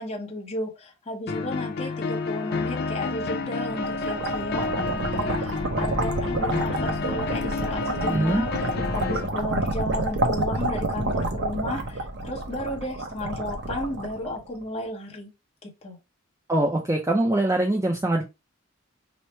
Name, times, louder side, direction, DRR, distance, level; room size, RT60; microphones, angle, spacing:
voice 1, 0.0-15.3 15.6-16.0, left 1 dB, 30° left, 0.9 m, -33 dB
sound 1, 1.3-9.3, left 4 dB, 50° left, 0.4 m, -30 dB
sound 2, 3.5-14.6, right 2 dB, 55° right, 0.7 m, -29 dB
voice 2, 8.0-8.4 16.5-18.2, right 1 dB, 15° right, 0.4 m, -23 dB
3.1 x 2.1 x 4.1 m
head